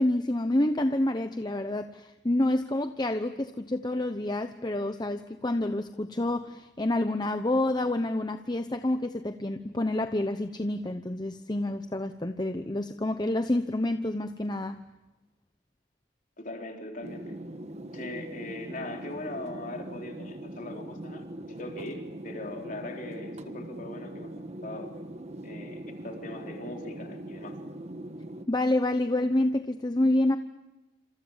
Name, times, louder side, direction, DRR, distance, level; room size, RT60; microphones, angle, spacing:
voice 1, 0.0-14.8 28.5-30.4, left 1 dB, 25° left, 8 dB, 0.9 m, -28 dB
voice 2, 16.4-17.4 17.9-24.3 24.6-24.9 25.4-27.6, left 2 dB, 45° left, 2 dB, 4.2 m, -40 dB
sound 1, 17.0-28.5, right 1 dB, 35° right, 1.4 m, -41 dB
27.5 x 27.5 x 7.3 m, 1.1 s
head